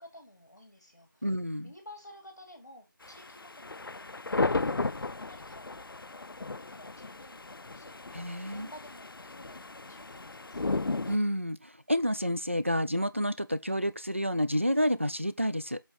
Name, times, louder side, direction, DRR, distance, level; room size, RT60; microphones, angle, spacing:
voice 1, 0.0-1.4 1.6-10.8, left 1 dB, 50° left, 2.6 m, -53 dB
voice 2, 1.2-1.7 8.1-8.7 11.1-15.8, equal, 35° right, 0.5 m, -29 dB
sound 1, 3.0-11.2, left 3 dB, 85° left, 0.4 m, -35 dB
7.9 x 3.8 x 4.0 m
figure-of-eight pair, 180°, 12 cm